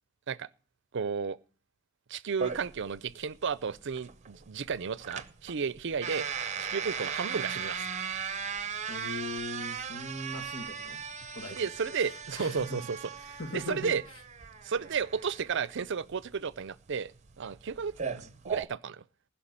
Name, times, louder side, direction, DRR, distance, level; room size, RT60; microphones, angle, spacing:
voice 1, 0.9-1.4 2.1-6.3 6.6-7.9 11.5-13.0 13.3-14.0 14.6-17.1 17.4-19.0, right 6 dB, 60° right, 0.5 m, -33 dB
sound 1, 2.4-18.6, right 6 dB, 35° right, 0.8 m, -38 dB
voice 2, 8.9-11.0 11.3-11.7 12.0-12.8 13.4-14.0 18.1-18.4, left 2 dB, 80° left, 2.1 m, -40 dB
16.0 x 5.7 x 8.6 m
head